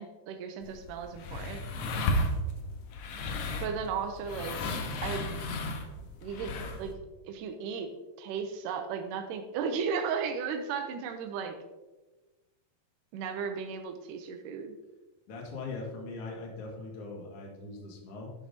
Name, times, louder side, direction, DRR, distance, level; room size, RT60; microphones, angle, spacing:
voice 1, 0.0-1.6 3.6-4.6 5.0-5.4 6.2-6.5 6.8-6.9 7.3-7.9 8.2-11.5 13.1-14.7, right 6 dB, 80° right, 5 dB, 1.9 m, -35 dB
sound 1, 0.6-6.9, left 1 dB, 70° left, 1.8 m, -34 dB
voice 2, 15.3-18.3, left 3 dB, 45° left, -1 dB, 2.3 m, -41 dB
10.5 x 9.9 x 2.8 m, 1.2 s
omnidirectional pair, 4.4 m